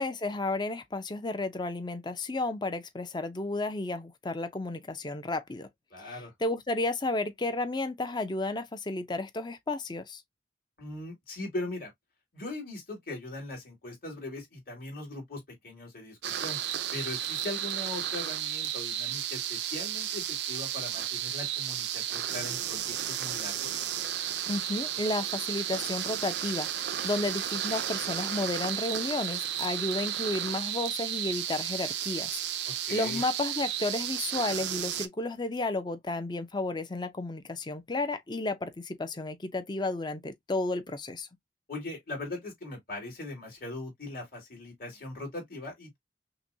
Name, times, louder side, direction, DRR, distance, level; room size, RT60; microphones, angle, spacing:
voice 1, 0.0-5.7 6.0-10.2 24.5-41.3, left 2 dB, 25° left, 0.6 m, -32 dB
voice 2, 5.9-6.3 10.8-11.9 12.3-16.6 16.9-23.7 32.9-33.2 41.7-46.0, left 2 dB, 55° left, 2.6 m, -40 dB
sound 1, 16.2-35.1, right 10 dB, 70° right, 0.5 m, -33 dB
5.7 x 2.2 x 2.7 m
head